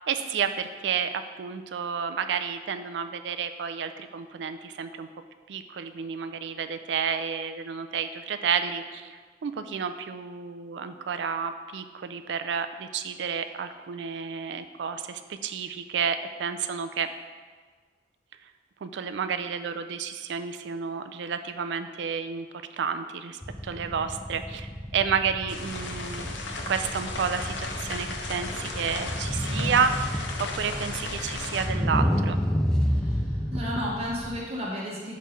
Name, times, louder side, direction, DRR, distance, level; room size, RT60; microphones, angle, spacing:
voice 1, 0.1-5.1 5.5-17.1 18.8-22.5 22.8-26.3 26.7-30.3 30.5-32.4, right 6 dB, 70° right, 9 dB, 0.4 m, -30 dB
sound 1, 23.4-34.4, equal, 5° left, 0.4 m, -30 dB
sound 2, 25.5-31.7, left 3 dB, 90° left, 0.7 m, -36 dB
voice 2, 32.8-35.2, equal, 35° right, -5 dB, 1.4 m, -33 dB
6.5 x 3.2 x 5.1 m, 1.5 s
head